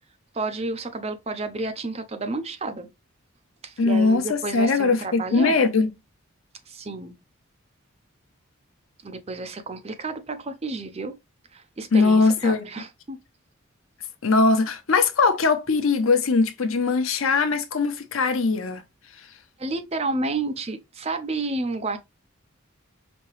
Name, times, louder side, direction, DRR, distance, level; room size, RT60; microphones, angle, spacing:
voice 1, 0.3-2.9 3.6-5.6 6.7-7.2 9.0-11.2 11.5-13.2 19.6-22.0, right 2 dB, 30° right, 0.5 m, -31 dB
voice 2, 3.8-5.9 11.9-12.7 14.2-18.8, left 4 dB, 80° left, 0.8 m, -21 dB
5.2 x 2.8 x 3.1 m
head